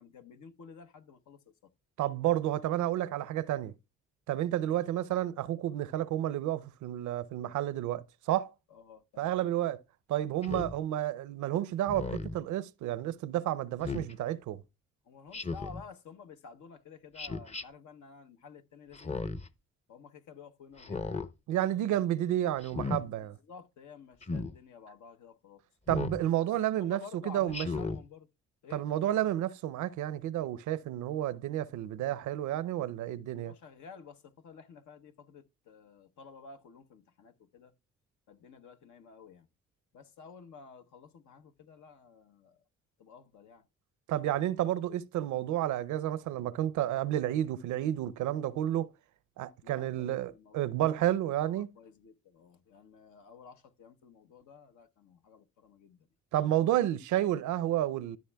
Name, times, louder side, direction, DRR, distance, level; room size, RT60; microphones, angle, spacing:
voice 1, 0.0-1.7 4.6-4.8 8.7-9.4 15.0-19.4 19.9-21.2 23.2-25.6 26.8-28.3 28.6-28.8 33.4-37.7 38.3-39.5 39.9-42.6 43.0-43.7 49.6-51.1 51.4-56.1, left 6 dB, 70° left, 0.9 m, -52 dB
voice 2, 2.0-3.7 4.3-8.5 9.2-9.8 10.1-14.6 21.5-23.4 25.9-27.7 28.7-33.5 44.1-48.9 49.4-51.7 56.3-58.2, right 12 dB, 70° right, 0.5 m, -31 dB
Speech synthesizer, 10.4-10.8 11.9-12.4 13.8-14.1 15.3-15.8 17.2-17.6 18.9-19.5 20.8-21.3 22.6-23.0 24.2-24.5 25.9-26.2 27.5-28.0, left 3 dB, 20° left, 0.7 m, -35 dB
13.0 x 6.3 x 2.2 m
supercardioid pair, 50°, 30 cm